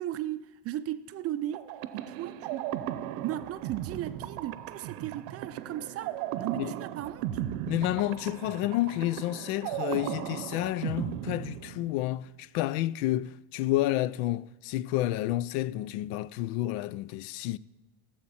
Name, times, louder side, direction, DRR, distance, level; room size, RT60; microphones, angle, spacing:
voice 1, 0.0-2.7 3.2-7.3, right 12 dB, 35° right, 0.5 m, -36 dB
sound 1, 1.5-12.2, right 12 dB, 75° right, 0.7 m, -36 dB
voice 2, 7.7-17.6, left 15 dB, 80° left, 0.5 m, -30 dB
17.0 x 7.5 x 4.2 m
supercardioid pair, 130°, 43 cm